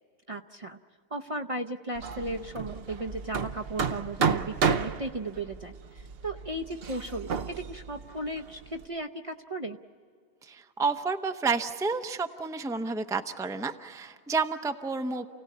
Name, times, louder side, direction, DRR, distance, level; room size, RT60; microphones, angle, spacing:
voice 1, 0.3-0.8 1.1-9.8, right 2 dB, 35° right, 5 dB, 0.7 m, -36 dB
Hammer, 1.9-8.8, right 6 dB, 65° right, 1.0 m, -32 dB
voice 2, 10.4-15.3, right 4 dB, 5° right, 7 dB, 0.6 m, -30 dB
29.0 x 17.5 x 8.5 m, 2.1 s
omnidirectional pair, 1.1 m